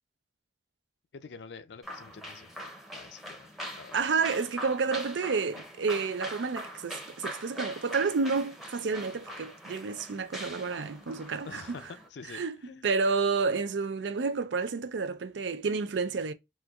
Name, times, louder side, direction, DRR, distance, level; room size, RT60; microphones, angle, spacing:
voice 1, 1.1-3.5 3.8-4.1 11.4-12.9, left 5 dB, 70° left, 0.5 m, -47 dB
sound 1, 1.8-12.1, equal, ahead, 0.7 m, -42 dB
voice 2, 3.9-11.6 12.3-12.6 12.8-16.3, right 4 dB, 85° right, 0.5 m, -30 dB
4.2 x 2.3 x 2.3 m
head